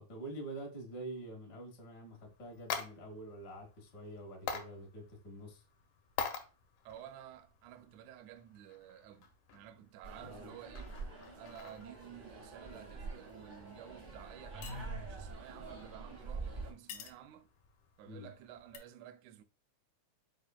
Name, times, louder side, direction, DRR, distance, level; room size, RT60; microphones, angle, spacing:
voice 1, 0.0-5.6 10.2-10.5 18.1-18.3, right 1 dB, 50° left, 1.2 m, -46 dB
sound 1, 2.1-18.8, left 7 dB, 75° left, 2.0 m, -48 dB
voice 2, 6.9-11.0 11.3-17.5 18.0-19.4, right 11 dB, 80° right, 1.8 m, -53 dB
sound 2, 10.0-16.7, right 3 dB, 40° right, 0.8 m, -45 dB
5.0 x 4.7 x 2.2 m
omnidirectional pair, 3.6 m